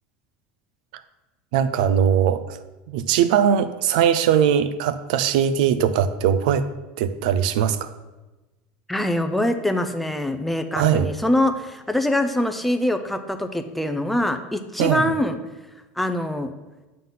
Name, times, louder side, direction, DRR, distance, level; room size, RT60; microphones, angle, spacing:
voice 1, 1.5-2.6 2.9-6.6 7.0-7.9 10.8-11.1 14.8-15.0, right 8 dB, 75° right, 13 dB, 0.5 m, -20 dB
voice 2, 8.9-15.4 16.0-16.5, left 1 dB, ahead, 7 dB, 0.5 m, -24 dB
7.5 x 3.9 x 5.5 m, 1.1 s
supercardioid pair, 145°, 4 cm